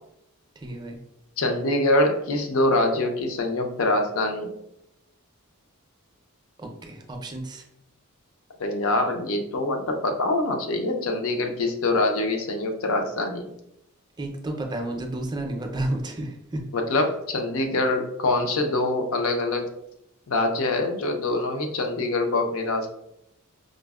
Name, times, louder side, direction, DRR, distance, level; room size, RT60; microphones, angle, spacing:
voice 1, 0.6-1.0 6.6-7.6 14.2-16.6, right 1 dB, 20° right, 2 dB, 0.4 m, -31 dB
voice 2, 1.4-4.5 8.6-13.5 16.7-19.7 20.3-22.9, left 2 dB, 70° left, 4 dB, 0.5 m, -24 dB
4.9 x 2.0 x 2.3 m, 0.79 s
head